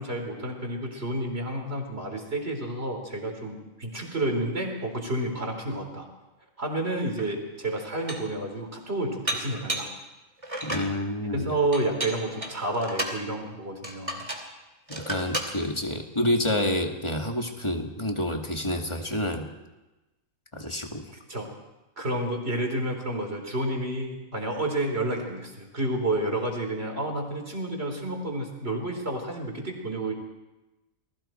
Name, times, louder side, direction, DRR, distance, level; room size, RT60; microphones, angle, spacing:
voice 1, 0.0-6.1 6.6-9.9 11.3-14.2 21.3-21.5 22.0-30.1, right 1 dB, 45° right, 2 dB, 4.0 m, -30 dB
Dishes pots and pans, 7.2-7.3 7.8-8.4 9.3-10.0 10.4-10.9 11.7-13.2 13.8-14.5 14.9-15.5, right 1 dB, 25° right, 2.6 m, -33 dB
voice 2, 10.6-11.5 14.9-19.5 20.5-21.1, left 1 dB, 20° left, 2 dB, 2.2 m, -28 dB
29.0 x 20.0 x 4.5 m, 1.1 s
omnidirectional pair, 1.4 m